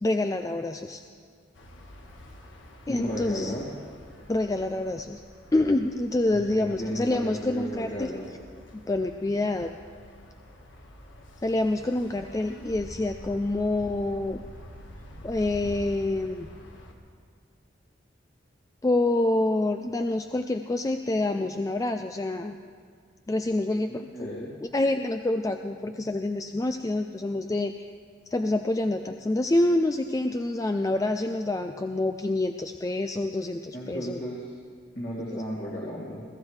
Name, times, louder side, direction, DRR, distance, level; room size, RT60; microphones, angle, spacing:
voice 1, 0.0-1.0 2.9-3.5 4.3-5.2 5.5-8.1 8.9-9.7 11.4-14.4 15.2-16.5 18.8-22.6 23.3-24.3 24.7-27.9 28.3-34.2 35.3-35.4, left 2 dB, 15° left, 6 dB, 0.3 m, -27 dB
sound 1, 1.5-16.9, equal, 80° left, 1.6 m, -47 dB
voice 2, 2.9-3.7 6.3-8.3 23.9-24.5 33.7-34.5 34.9-36.2, equal, 55° left, -6 dB, 2.3 m, -34 dB
22.0 x 14.5 x 3.3 m, 2.1 s
head